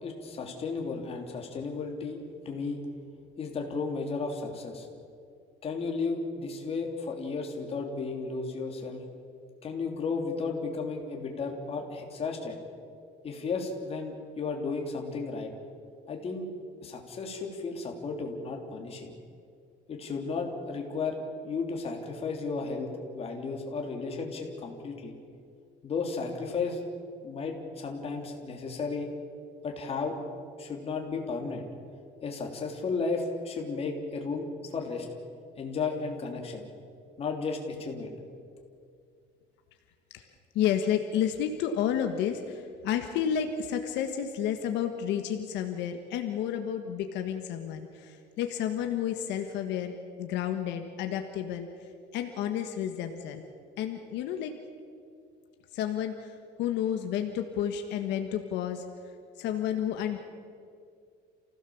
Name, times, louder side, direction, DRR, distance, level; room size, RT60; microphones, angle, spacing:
voice 1, 0.0-2.8 3.4-4.9 5.6-9.0 9.6-12.6 13.2-15.5 16.1-16.5 16.8-19.1 19.9-21.2 21.4-25.1 25.8-26.8 27.2-29.1 29.6-30.2 30.6-31.6 32.2-35.1 35.6-36.6 37.2-38.1, left 4 dB, 35° left, 2 dB, 3.1 m, -34 dB
voice 2, 40.5-53.4 53.8-54.6 55.7-58.8 59.4-60.2, left 9 dB, 75° left, 6 dB, 1.5 m, -31 dB
28.5 x 16.0 x 7.1 m, 2.3 s
cardioid pair, 150°, 18 cm